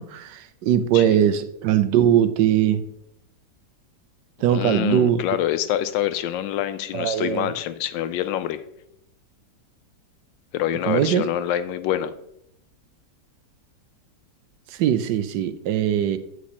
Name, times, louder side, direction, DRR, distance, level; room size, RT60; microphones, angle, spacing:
voice 1, 0.0-2.8 4.4-5.2 6.9-7.5 10.8-11.2 14.8-16.2, right 10 dB, 75° right, 1.2 m, -20 dB
voice 2, 4.5-8.6 10.5-12.1, left 11 dB, 90° left, 1.3 m, -26 dB
8.3 x 4.9 x 4.2 m
omnidirectional pair, 2.0 m